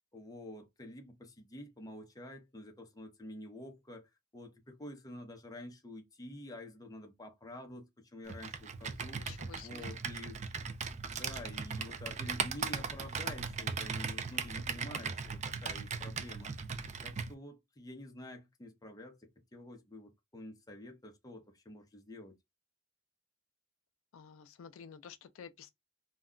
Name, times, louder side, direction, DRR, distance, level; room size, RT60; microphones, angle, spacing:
voice 1, 0.1-9.2 9.6-10.4 11.1-16.5 17.0-22.3, left 1 dB, 20° left, 0.6 m, -48 dB
Computer keyboard, 8.3-17.3, right 5 dB, 35° right, 0.3 m, -38 dB
voice 2, 9.1-9.9 24.1-25.7, left 7 dB, 70° left, 0.3 m, -51 dB
2.2 x 2.2 x 3.6 m
head